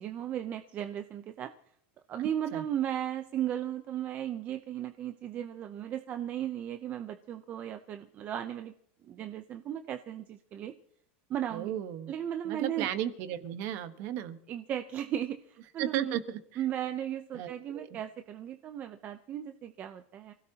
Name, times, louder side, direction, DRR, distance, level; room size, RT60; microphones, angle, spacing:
voice 1, 0.0-1.5 2.1-8.7 9.0-10.7 11.3-11.7 12.1-12.9 14.5-16.2 16.6-20.3, right 10 dB, 25° right, 8 dB, 0.6 m, -36 dB
voice 2, 11.5-12.1 12.4-14.4 15.8-16.6 17.3-18.0, right 11 dB, 40° right, 10 dB, 1.3 m, -35 dB
27.5 x 16.5 x 2.9 m, 0.67 s
supercardioid pair, 170°, 7 cm